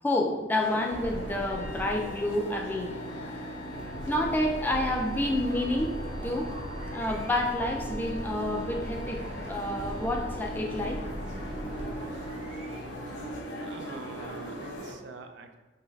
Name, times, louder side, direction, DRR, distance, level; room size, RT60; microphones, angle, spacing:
voice 1, 0.0-2.9 3.8-5.9 6.2-6.5 6.9-11.0, left 1 dB, 10° left, 0 dB, 0.3 m, -29 dB
sound 1, 0.6-14.9, right 1 dB, 90° left, 0.7 m, -40 dB
sound 2, 0.9-13.3, equal, 30° right, 0.6 m, -40 dB
sound 3, 1.5-11.4, left 2 dB, 50° left, 0.6 m, -48 dB
voice 2, 13.6-15.6, right 4 dB, 75° right, 6 dB, 0.4 m, -45 dB
4.0 x 3.2 x 2.3 m, 1.2 s
head